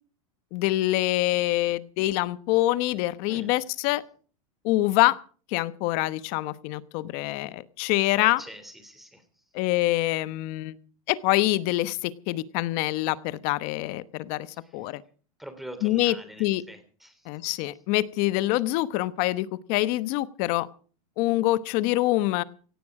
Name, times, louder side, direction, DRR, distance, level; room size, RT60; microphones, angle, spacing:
voice 1, 0.5-4.0 4.6-5.1 5.5-8.4 9.5-10.8 11.1-14.5 14.7-15.0 15.8-16.6 17.3-20.7 21.2-22.4, left 17 dB, 45° left, 15 dB, 1.0 m, -25 dB
voice 2, 8.2-9.2 15.4-17.2, equal, ahead, 9 dB, 3.1 m, -43 dB
17.5 x 15.5 x 4.9 m, 0.42 s
supercardioid pair, 145°, 18 cm